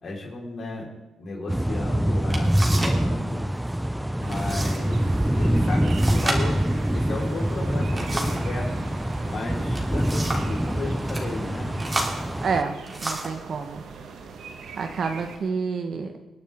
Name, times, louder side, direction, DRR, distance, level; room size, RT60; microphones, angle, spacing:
voice 1, 0.0-0.9 1.2-3.4 4.2-5.1 5.3-6.6 6.9-8.7 9.3-11.7, left 3 dB, 55° left, -1 dB, 4.5 m, -34 dB
sound 1, 1.5-12.6, right 1 dB, 5° right, 0.6 m, -25 dB
sound 2, 1.8-1.9 2.3-3.0 3.3-3.8 4.3-4.8 5.1-5.2 5.9-8.5 9.5-10.6 11.0-11.3 11.8-13.4 14.2-14.4 14.9-15.4, right 1 dB, 25° right, 3.3 m, -32 dB
sound 3, 4.2-15.4, right 5 dB, 80° right, 1.5 m, -41 dB
voice 2, 12.4-12.7 13.0-13.8 14.8-16.1, right 5 dB, 60° right, 6 dB, 1.4 m, -28 dB
25.5 x 9.2 x 3.7 m, 1.1 s
supercardioid pair, 60°, 0 cm